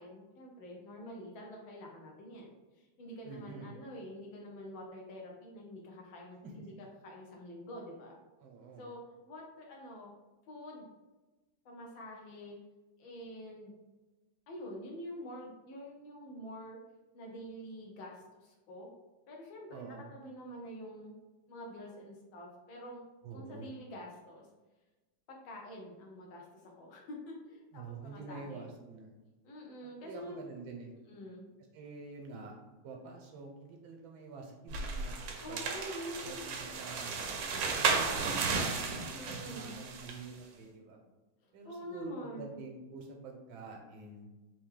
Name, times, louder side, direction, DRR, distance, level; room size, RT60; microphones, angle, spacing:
voice 1, 0.0-6.7 7.0-8.2 8.8-10.1 10.5-10.9 11.6-12.6 13.0-13.7 14.5-16.8 17.1-18.9 19.3-21.2 21.5-23.0 23.3-24.5 25.3-26.4 26.8-28.7 29.4-30.5 31.1-31.5 35.4-36.7 39.1-39.8 41.6-42.6, equal, 75° left, -1 dB, 1.7 m, -46 dB
voice 2, 3.2-3.7 6.4-6.5 8.4-8.9 19.7-20.1 23.2-23.7 27.7-29.1 30.0-30.9 31.7-32.6 32.8-35.7 36.2-37.1 37.6-41.0 41.5-44.3, right 4 dB, 90° right, 2 dB, 1.6 m, -47 dB
sound 1, 34.7-40.2, right 4 dB, 70° right, 1.3 m, -34 dB
4.4 x 3.0 x 3.7 m, 1.1 s
omnidirectional pair, 2.2 m